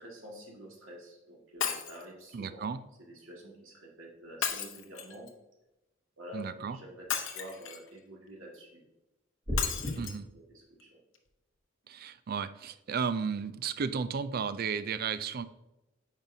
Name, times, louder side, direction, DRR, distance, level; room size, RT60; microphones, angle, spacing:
voice 1, 0.0-2.6 3.0-5.3 6.2-7.1 7.3-8.8 9.8-9.9 10.3-11.0, equal, 90° right, -2 dB, 1.9 m, -48 dB
Shatter, 1.6-2.1 4.4-5.3 7.1-7.9 9.6-10.2 10.8-10.9 11.2-11.3, left 7 dB, 70° left, 0.8 m, -34 dB
voice 2, 2.3-2.8 6.3-6.8 10.0-10.3 11.9-15.5, right 6 dB, 50° right, 13 dB, 0.4 m, -34 dB
sound 1, 9.4-9.9, left 1 dB, 25° right, 1.7 m, -32 dB
9.0 x 5.4 x 2.7 m, 0.94 s
head